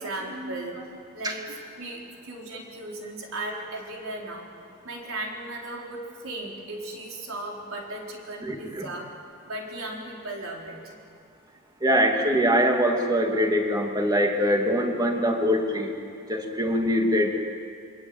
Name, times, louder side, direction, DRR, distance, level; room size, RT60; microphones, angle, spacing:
voice 1, 0.0-4.5 4.8-9.1 9.4-11.0 11.9-12.0, right 2 dB, 70° right, -1 dB, 4.6 m, -36 dB
voice 2, 8.4-8.9 11.8-15.9 16.3-17.4, equal, 20° right, 2 dB, 2.5 m, -23 dB
28.5 x 23.0 x 9.0 m, 2.3 s
head